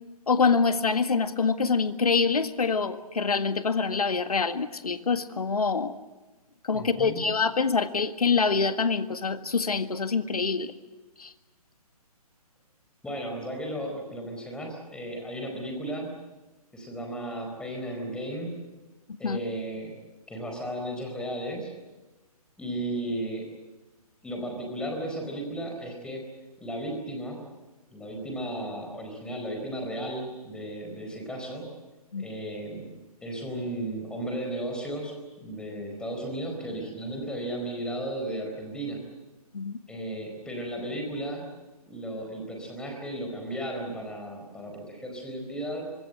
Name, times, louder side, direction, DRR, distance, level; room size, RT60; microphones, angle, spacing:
voice 1, 0.3-5.9 6.6-10.8 11.2-11.3 19.2-19.4 32.1-32.3 39.5-39.8, left 5 dB, 70° left, 10 dB, 1.8 m, -25 dB
voice 2, 6.7-7.2 13.0-16.1 16.7-18.5 19.2-19.9 20.3-21.7 22.6-23.5 24.2-26.2 26.6-27.4 27.9-31.6 32.2-32.9 33.2-39.0 39.9-41.5 41.9-45.9, right 1 dB, 5° left, 2 dB, 4.4 m, -34 dB
25.0 x 21.5 x 7.9 m, 1.2 s
figure-of-eight pair, 140°, 20 cm